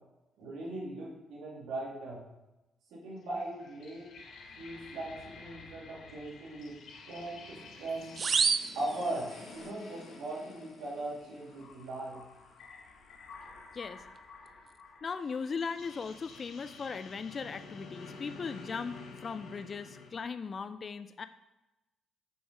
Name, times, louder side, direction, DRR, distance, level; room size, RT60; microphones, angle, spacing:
voice 1, 0.4-2.2 2.9-4.1 4.6-6.8 7.1-8.2 8.7-12.2, right 2 dB, 85° right, -4 dB, 2.6 m, -39 dB
sound 1, 3.2-20.1, left 4 dB, 70° left, 1.1 m, -50 dB
sound 2, 8.2-9.7, right 5 dB, 45° right, 0.4 m, -30 dB
voice 2, 15.0-21.3, left 5 dB, 40° left, 11 dB, 0.3 m, -38 dB
7.0 x 4.7 x 5.3 m, 1.0 s
cardioid pair, 90°, 0 cm